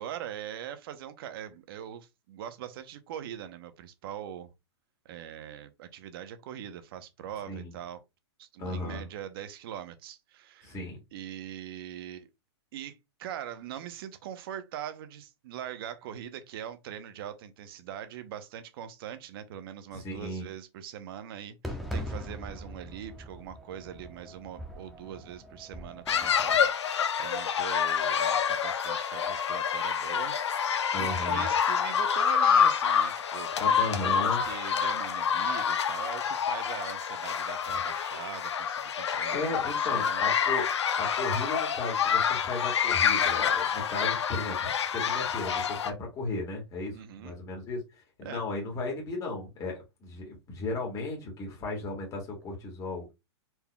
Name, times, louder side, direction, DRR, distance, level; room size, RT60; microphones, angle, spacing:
voice 1, 0.0-4.5 5.0-8.0 8.4-10.8 11.1-12.3 12.7-26.6 27.2-39.6 39.9-40.3 46.9-47.4 48.2-48.4, right 10 dB, 55° right, 0.8 m, -42 dB
voice 2, 8.6-9.0 10.6-11.0 19.9-20.4 30.9-31.4 33.6-34.4 39.3-40.7 41.0-53.1, left 2 dB, 25° left, 1.8 m, -35 dB
Fireworks, 21.6-26.7, equal, ahead, 0.9 m, -41 dB
sound 1, 26.1-45.9, left 7 dB, 90° left, 0.7 m, -27 dB
4.3 x 3.5 x 2.3 m
hypercardioid pair, 140°, 14 cm